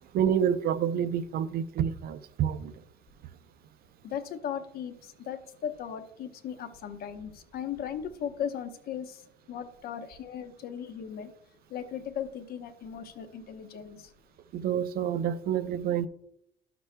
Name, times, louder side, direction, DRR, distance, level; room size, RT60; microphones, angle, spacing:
voice 1, 0.0-2.7 14.5-16.1, right 9 dB, 65° right, 0.6 m, -28 dB
voice 2, 4.0-9.2 9.5-11.3 11.7-14.1, left 8 dB, 65° left, 1.0 m, -37 dB
13.0 x 6.0 x 2.2 m
cardioid pair, 110°, 17 cm